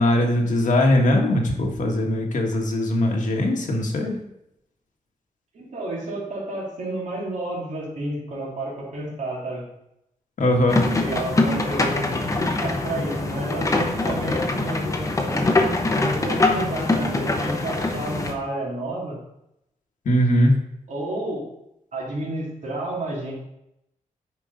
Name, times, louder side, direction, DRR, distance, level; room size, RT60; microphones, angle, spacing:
voice 1, 0.0-4.2 10.4-10.8 20.0-20.5, left 1 dB, 70° left, 1 dB, 1.5 m, -20 dB
voice 2, 5.5-9.6 11.0-12.3 12.6-15.7 16.0-19.2 20.9-21.4 21.9-23.3, right 1 dB, 65° right, -4 dB, 2.7 m, -31 dB
sound 1, 10.7-18.3, left 2 dB, 25° left, 0.9 m, -23 dB
9.2 x 5.1 x 4.0 m, 0.81 s
wide cardioid pair, 135°, 14 cm